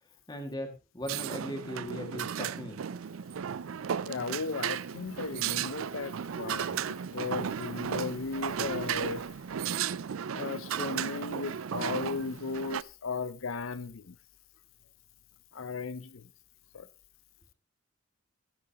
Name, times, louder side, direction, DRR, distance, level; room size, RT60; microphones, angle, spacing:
voice 1, 0.3-3.0, left 1 dB, 20° left, 2.1 m, -39 dB
sound 1, 1.1-12.8, right 8 dB, 85° right, 0.4 m, -35 dB
voice 2, 4.1-9.2 9.6-9.7 10.3-14.1 15.5-16.3 16.7-16.9, left 4 dB, 80° left, 0.6 m, -36 dB
14.5 x 9.7 x 2.9 m
head